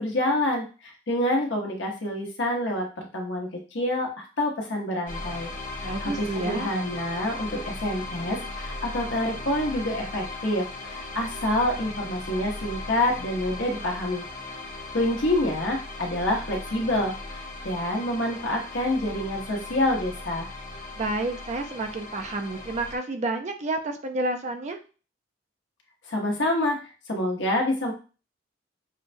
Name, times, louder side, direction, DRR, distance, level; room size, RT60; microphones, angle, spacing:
voice 1, 0.0-14.2 14.9-20.5 26.1-27.9, left 1 dB, 75° left, 0 dB, 1.0 m, -27 dB
sound 1, 5.1-23.0, left 2 dB, 45° left, 1.0 m, -37 dB
voice 2, 5.8-6.7 21.0-24.8, right 2 dB, 40° right, 5 dB, 0.4 m, -30 dB
6.2 x 2.2 x 2.6 m, 0.35 s
head